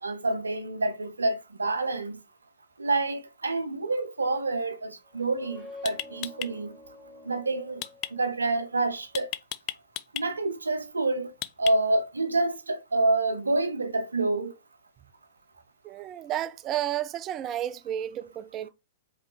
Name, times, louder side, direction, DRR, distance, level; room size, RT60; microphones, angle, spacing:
voice 1, 0.0-2.2 2.8-6.7 7.3-7.8 8.1-9.3 10.1-11.3 11.6-14.5, right 2 dB, 85° right, 0.5 m, -27 dB
sound 1, 5.1-8.7, left 3 dB, 10° left, 2.5 m, -47 dB
sound 2, 5.2-5.4 5.9-6.5 7.8-8.1 9.1-10.3 11.4-12.0, left 16 dB, 40° left, 0.3 m, -34 dB
voice 2, 15.8-18.7, right 11 dB, 30° right, 0.4 m, -32 dB
5.0 x 3.1 x 3.0 m
figure-of-eight pair, 110°, 0 cm